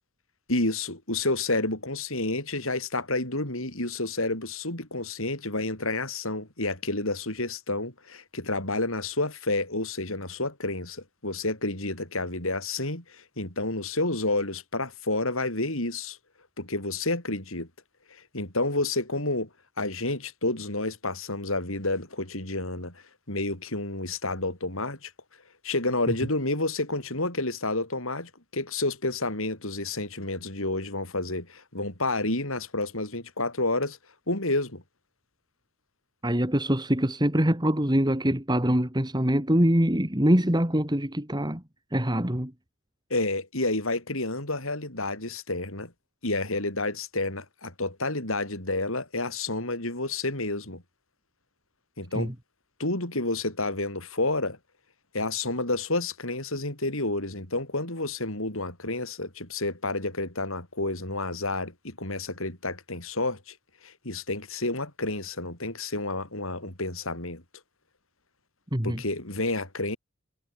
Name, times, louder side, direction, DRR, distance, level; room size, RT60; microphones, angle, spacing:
voice 1, 0.5-16.2 16.6-17.7 18.1-19.5 19.8-23.0 23.3-25.1 25.6-34.0 34.3-34.8 43.1-45.9 46.2-50.8 52.0-52.3 52.8-54.6 55.1-63.6 63.8-67.4 68.8-70.0, left 2 dB, 75° left, 7.3 m, -30 dB
voice 2, 36.2-41.6 41.9-42.5 52.1-52.3 68.7-69.0, equal, 20° right, 2.6 m, -24 dB
head